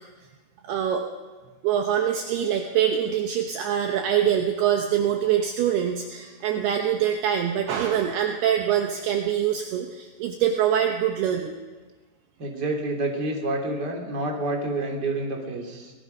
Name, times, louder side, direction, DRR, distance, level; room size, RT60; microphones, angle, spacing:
voice 1, 0.6-1.1 1.6-11.6, right 9 dB, 80° right, 4 dB, 2.3 m, -24 dB
voice 2, 12.4-15.9, right 2 dB, 25° right, 1 dB, 2.7 m, -28 dB
25.0 x 19.0 x 5.4 m, 1.4 s
omnidirectional pair, 6.0 m